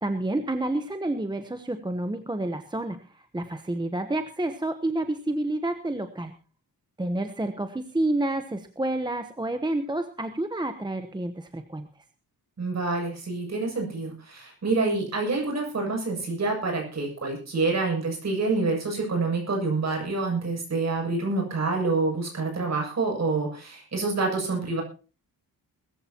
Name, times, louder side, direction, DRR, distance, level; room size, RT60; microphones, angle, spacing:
voice 1, 0.0-6.3 7.0-11.9, right 1 dB, 10° right, 8 dB, 1.0 m, -29 dB
voice 2, 12.6-24.8, right 3 dB, 45° right, 1 dB, 7.4 m, -27 dB
21.0 x 14.5 x 2.9 m, 0.36 s
wide cardioid pair, 150°, 37 cm